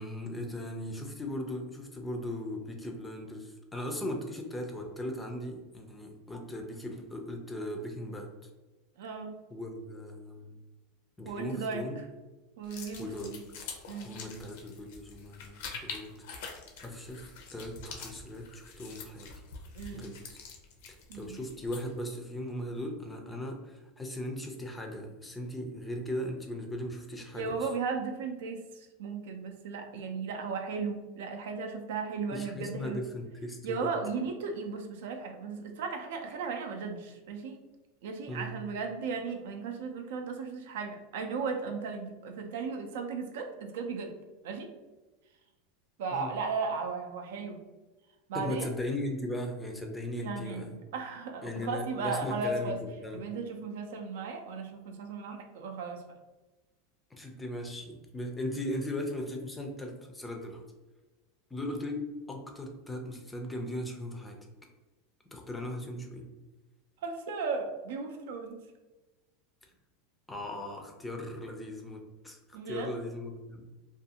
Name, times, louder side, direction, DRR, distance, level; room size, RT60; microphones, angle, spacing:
voice 1, 0.0-8.3 9.5-10.5 11.2-12.0 13.0-13.3 14.0-19.3 19.9-20.4 21.1-27.7 32.3-33.9 38.3-38.5 46.1-46.3 48.3-50.7 51.4-53.2 57.1-60.6 61.5-64.4 65.3-66.3 70.3-72.4 72.6-73.6, left 1 dB, 10° left, 2 dB, 0.4 m, -38 dB
voice 2, 9.0-9.3 11.2-12.0 12.6-13.4 13.9-14.2 19.7-20.1 21.1-21.4 27.3-33.0 33.6-37.6 38.0-44.1 44.4-44.7 46.0-47.6 48.3-48.7 50.2-52.8 53.1-56.0 67.0-68.6 72.5-72.9, right 4 dB, 80° right, 5 dB, 0.4 m, -36 dB
sound 1, 12.6-22.0, left 5 dB, 70° left, 0.5 m, -46 dB
2.5 x 2.3 x 2.7 m, 1.2 s
supercardioid pair, 145°, 0 cm